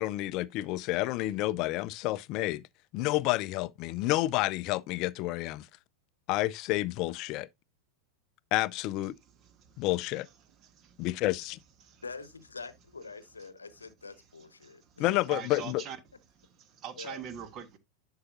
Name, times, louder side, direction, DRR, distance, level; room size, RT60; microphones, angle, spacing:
voice 1, 0.0-2.6 2.9-5.7 6.3-7.5 8.5-9.1 9.8-10.3 11.0-11.6 15.0-15.8, left 17 dB, 40° left, 0.4 m, -29 dB
voice 2, 9.4-9.8 10.6-11.1 11.8-12.0 14.6-15.0 15.3-16.0 16.6-17.8, right 8 dB, 35° right, 1.4 m, -43 dB
voice 3, 12.0-15.2 16.9-17.2, left 4 dB, 75° left, 0.9 m, -45 dB
11.0 x 5.6 x 2.6 m
figure-of-eight pair, 90°, 0 cm